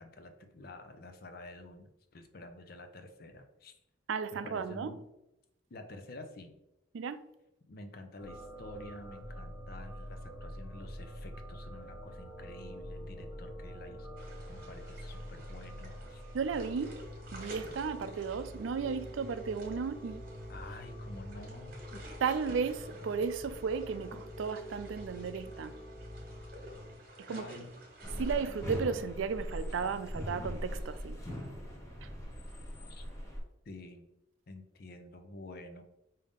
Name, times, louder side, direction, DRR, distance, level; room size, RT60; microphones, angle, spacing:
voice 1, 0.0-3.7 4.4-5.0 5.7-6.5 7.7-14.2 14.5-16.2 20.5-22.0 27.3-27.7 32.9-33.0 33.7-34.1 34.5-35.8, left 2 dB, 50° left, 6 dB, 0.5 m, -49 dB
voice 2, 4.1-5.0 6.9-7.2 16.3-17.0 17.3-20.2 22.2-25.8 27.2-27.5 28.2-31.2 32.0-32.1, right 5 dB, 90° right, 12 dB, 0.4 m, -34 dB
sound 1, 8.2-26.9, equal, 15° right, 1.0 m, -46 dB
sound 2, 14.2-28.8, right 1 dB, 50° right, 1.2 m, -52 dB
sound 3, 28.0-33.4, equal, 15° left, 0.8 m, -40 dB
5.0 x 2.7 x 3.5 m, 0.89 s
head